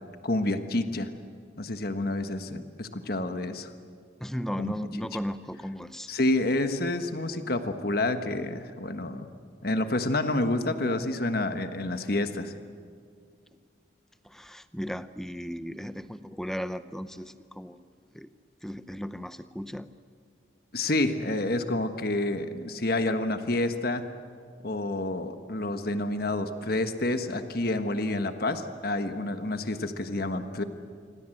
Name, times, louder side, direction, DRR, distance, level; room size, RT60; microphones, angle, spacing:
voice 1, 0.2-1.1 1.6-3.7 4.6-4.7 6.1-9.3 9.6-12.5 20.7-24.1 24.6-30.6, left 2 dB, 50° left, 8 dB, 1.4 m, -28 dB
voice 2, 4.2-6.1 14.2-17.8 18.1-18.3 18.6-19.9, equal, ahead, 12 dB, 0.7 m, -36 dB
27.0 x 25.0 x 7.8 m, 2.2 s
head